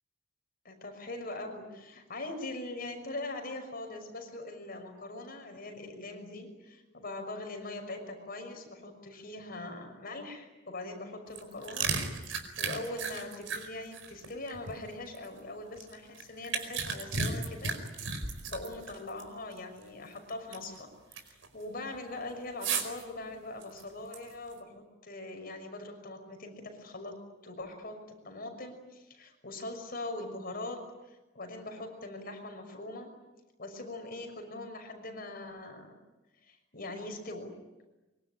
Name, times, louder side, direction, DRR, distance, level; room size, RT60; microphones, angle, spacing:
voice 1, 0.6-17.8 18.1-18.2 18.5-20.9 21.2-33.1 33.6-36.0 36.4-37.5, left 2 dB, 50° left, 5 dB, 6.0 m, -42 dB
sound 1, 11.3-15.3 15.8-19.3 19.5-19.6 20.2-20.8 21.1-21.5 22.6-23.0 23.6-24.5, right 5 dB, 80° right, 4.9 m, -34 dB
25.0 x 24.0 x 10.0 m, 1.1 s
head